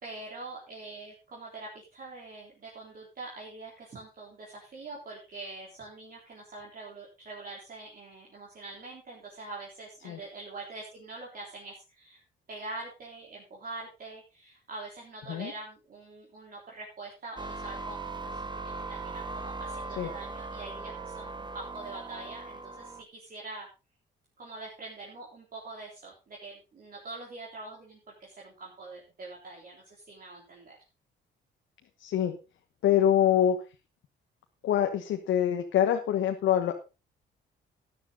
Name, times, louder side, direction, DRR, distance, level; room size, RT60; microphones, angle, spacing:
voice 1, 0.0-12.2 12.5-23.7 24.4-30.8, right 2 dB, 45° right, -3 dB, 3.8 m, -44 dB
sound 1, 17.4-23.0, right 3 dB, 25° right, 1.1 m, -39 dB
voice 2, 32.0-32.4 32.8-33.6 34.6-36.8, left 10 dB, 80° left, 5 dB, 1.2 m, -25 dB
12.5 x 10.0 x 3.9 m, 0.30 s
cardioid pair, 90°, 20 cm